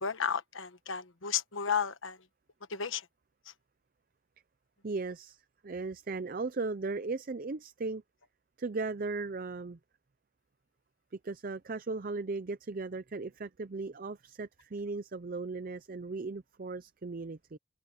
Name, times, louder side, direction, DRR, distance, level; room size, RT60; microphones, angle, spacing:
voice 1, 0.0-2.2 2.7-3.0, left 7 dB, 80° left, 1.2 m, -33 dB
voice 2, 4.8-8.0 8.6-9.8 11.2-17.6, right 3 dB, 45° right, 0.5 m, -37 dB
head